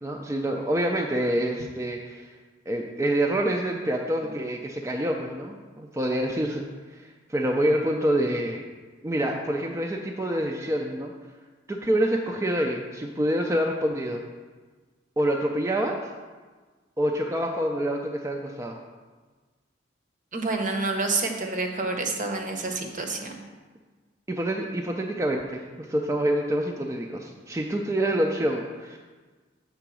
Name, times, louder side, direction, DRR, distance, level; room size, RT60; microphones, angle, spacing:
voice 1, 0.0-2.3 2.7-8.6 9.0-11.1 11.7-14.2 15.2-16.0 17.0-18.8 24.3-29.0, right 1 dB, 15° right, 1 dB, 0.4 m, -27 dB
voice 2, 20.3-23.4, right 3 dB, 45° right, 3 dB, 0.8 m, -28 dB
6.9 x 3.8 x 6.1 m, 1.4 s
head